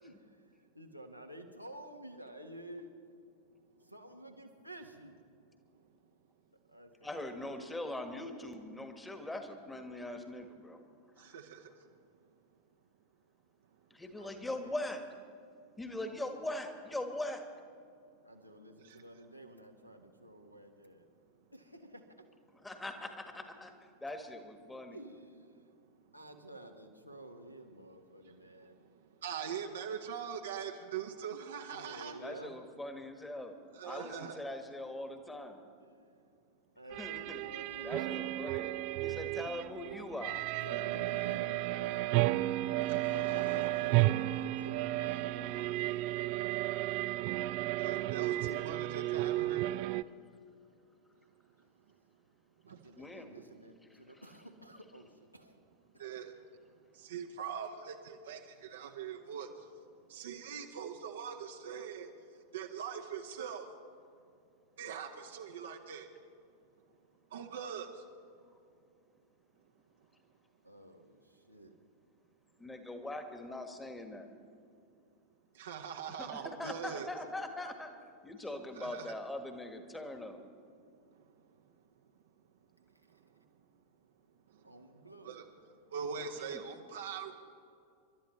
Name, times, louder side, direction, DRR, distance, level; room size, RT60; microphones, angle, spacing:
voice 1, 0.0-2.9 3.8-5.2 6.7-7.7 14.2-14.8 16.0-16.1 18.2-21.1 21.5-22.2 24.9-25.6 26.1-28.8 31.7-32.6 35.8-36.0 36.7-38.8 40.6-46.1 52.7-55.6 55.9-56.1 70.6-71.8 84.6-85.5, right 1 dB, 90° right, 3 dB, 1.3 m, -51 dB
voice 2, 7.0-10.8 11.2-11.3 13.9-15.0 15.8-17.4 22.6-25.0 32.2-33.6 33.8-35.6 37.0-37.4 37.8-38.7 39.0-40.4 41.7-41.8 45.6-45.7 53.0-53.3 53.9-54.2 72.6-74.3 76.2-77.9 78.2-80.4 86.5-86.6, left 1 dB, 10° left, 6 dB, 1.5 m, -41 dB
voice 3, 29.2-32.2 33.8-34.4 43.1-43.7 47.8-49.6 56.0-56.3 57.1-58.4 58.7-59.5 60.1-62.1 62.5-63.6 64.8-66.0 67.3-67.9 75.6-77.1 78.8-79.1 85.2-85.4 85.9-87.3, right 7 dB, 60° right, 3 dB, 0.9 m, -41 dB
sound 1, 36.9-50.0, right 17 dB, 45° right, 0.4 m, -33 dB
30.0 x 12.5 x 3.2 m, 2.4 s
figure-of-eight pair, 90°, 0 cm